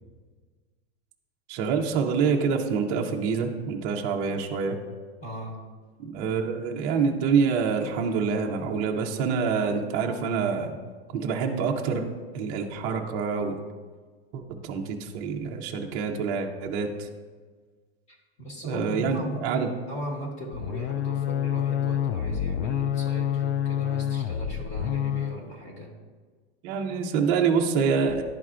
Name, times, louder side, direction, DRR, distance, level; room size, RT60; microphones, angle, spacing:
voice 1, 1.5-4.8 6.0-10.7 11.1-12.0 12.3-13.6 14.3-17.1 18.6-19.7 26.6-28.2, right 5 dB, 25° right, 1 dB, 0.4 m, -26 dB
voice 2, 5.2-5.7 18.1-26.0, equal, 20° left, 1 dB, 1.0 m, -38 dB
sound 1, 20.5-25.4, left 9 dB, 85° left, 0.5 m, -27 dB
11.0 x 4.4 x 2.4 m, 1.5 s
supercardioid pair, 170°, 32 cm